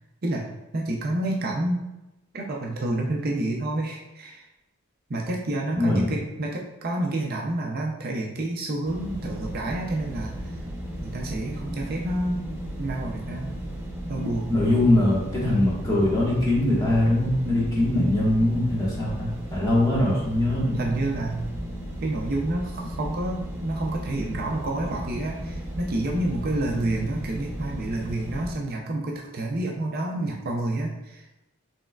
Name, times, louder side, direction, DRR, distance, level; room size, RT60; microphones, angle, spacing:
voice 1, 0.7-1.8 2.3-4.4 5.1-10.6 11.0-13.6 14.1-14.6 20.7-21.5 22.0-31.3, right 1 dB, 45° right, 0 dB, 0.5 m, -29 dB
voice 2, 5.7-6.1 14.5-20.8, left 1 dB, 15° left, -6 dB, 1.3 m, -22 dB
sound 1, 8.9-28.5, equal, 10° right, 0.7 m, -35 dB
6.7 x 3.2 x 2.3 m, 0.99 s
head